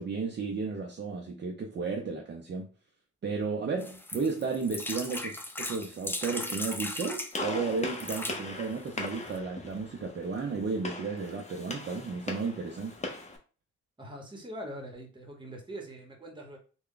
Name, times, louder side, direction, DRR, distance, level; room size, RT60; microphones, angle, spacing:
voice 1, 0.0-2.7 3.2-13.0, right 4 dB, 40° right, 0.6 m, -33 dB
sound 1, 3.8-7.3 7.9-8.4 9.1-9.2 9.3-9.4, left 1 dB, 10° left, 0.4 m, -37 dB
Gunshot gunfire, 7.3-13.4, left 2 dB, 25° left, 0.8 m, -39 dB
voice 2, 14.0-16.6, right 1 dB, 15° right, 1.1 m, -42 dB
3.3 x 2.3 x 3.8 m
cardioid pair, 105°, 29 cm